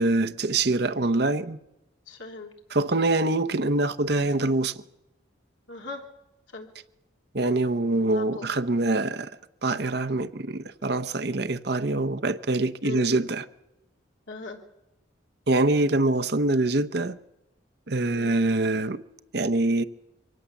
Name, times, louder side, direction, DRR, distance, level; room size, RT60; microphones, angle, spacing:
voice 1, 0.0-1.6 2.7-4.7 7.3-9.3 9.6-13.4 15.5-17.1 17.9-19.0 19.3-19.8, right 2 dB, 55° right, 0.9 m, -24 dB
voice 2, 2.1-2.5 5.7-6.1 6.5-6.7 8.1-8.5 12.8-13.1 14.3-14.6 18.1-18.4, left 3 dB, 75° left, 3.1 m, -38 dB
24.5 x 17.0 x 7.2 m
head